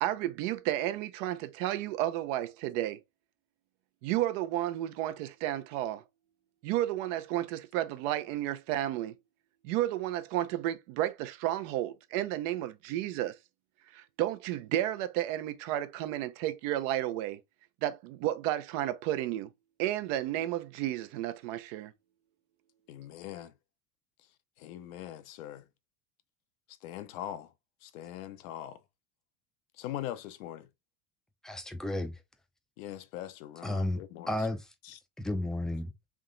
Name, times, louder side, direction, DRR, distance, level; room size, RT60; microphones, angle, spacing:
voice 1, 0.0-3.0 4.0-6.0 6.6-9.1 9.6-13.3 13.9-17.4 17.8-19.5 19.8-21.9, right 13 dB, 65° right, 0.7 m, -32 dB
voice 2, 22.9-23.5 24.6-25.7 26.7-27.5 27.8-28.8 29.7-30.7 32.8-34.5 34.8-35.0, left 12 dB, 80° left, 0.8 m, -42 dB
voice 3, 31.4-32.1 33.6-34.6 35.2-35.9, left 1 dB, ahead, 0.5 m, -32 dB
3.6 x 2.9 x 3.7 m
supercardioid pair, 130°, 41 cm